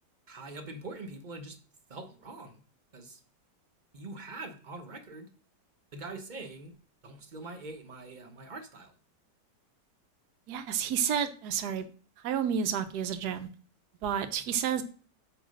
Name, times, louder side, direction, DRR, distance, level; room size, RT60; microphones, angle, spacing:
voice 1, 0.3-1.6 1.9-2.6 2.9-3.2 3.9-5.3 5.9-6.7 7.0-8.9, right 2 dB, 35° right, 6 dB, 0.7 m, -43 dB
voice 2, 10.5-11.9 12.2-13.5 14.0-14.8, right 8 dB, 70° right, 10 dB, 1.3 m, -30 dB
8.6 x 3.0 x 6.3 m, 0.40 s
omnidirectional pair, 1.9 m